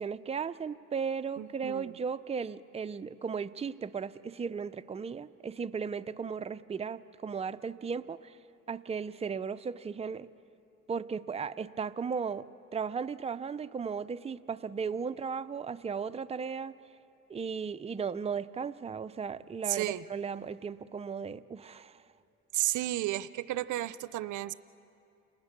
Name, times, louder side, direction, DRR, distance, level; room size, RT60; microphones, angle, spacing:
voice 1, 0.0-8.3 8.7-10.3 10.9-12.4 12.7-16.7 17.3-22.0, right 6 dB, 20° right, 11 dB, 0.5 m, -36 dB
voice 2, 1.4-1.9 19.7-20.0 22.5-24.5, right 15 dB, 75° right, 16 dB, 0.6 m, -32 dB
30.0 x 19.0 x 6.7 m, 2.7 s
cardioid pair, 90°, 30 cm